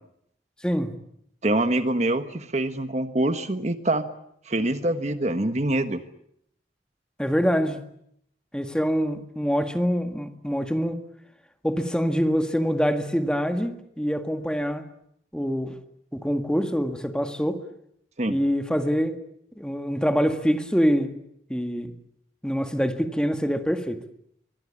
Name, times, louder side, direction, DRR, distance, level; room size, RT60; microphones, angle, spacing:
voice 1, 0.6-0.9 7.2-7.8 8.5-11.0 11.6-14.9 15.3-15.7 16.1-17.6 18.3-19.2 19.6-21.1 21.5-21.9 22.4-24.0, equal, 5° left, 1.8 m, -25 dB
voice 2, 1.4-4.1 4.5-6.0 18.2-18.4, right 1 dB, 40° right, 1.3 m, -25 dB
24.0 x 23.5 x 8.6 m
head